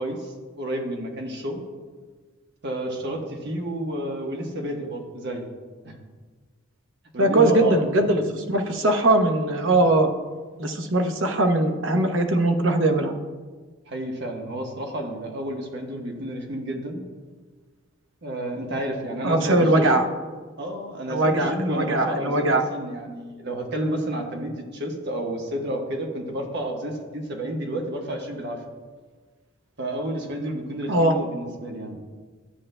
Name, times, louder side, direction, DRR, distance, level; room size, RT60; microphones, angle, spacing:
voice 1, 0.0-1.6 2.6-5.5 5.8-5.9 7.1-8.1 13.9-17.0 18.2-20.0 20.6-28.6 29.8-32.0, right 1 dB, 60° right, 1 dB, 1.2 m, -30 dB
voice 2, 7.2-10.1 10.6-13.1 19.2-20.0 21.1-22.6 30.9-31.2, right 2 dB, 75° right, 4 dB, 0.9 m, -21 dB
13.0 x 8.3 x 2.2 m, 1.4 s
head